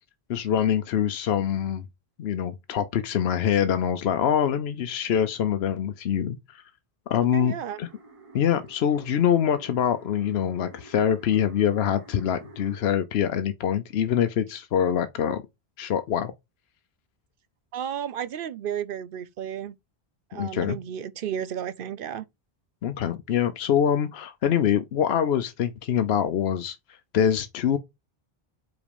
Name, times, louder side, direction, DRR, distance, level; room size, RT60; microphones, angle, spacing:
voice 1, 0.3-1.8 2.2-6.6 7.1-7.9 8.3-15.4 15.8-16.3 20.3-20.8 22.8-27.8, left 9 dB, 85° left, 0.9 m, -24 dB
voice 2, 7.3-7.8 17.7-19.7 20.3-22.3, right 9 dB, 65° right, 0.7 m, -33 dB
sound 1, 7.7-12.8, right 2 dB, 35° right, 1.0 m, -49 dB
5.0 x 4.1 x 5.2 m
omnidirectional pair, 1.0 m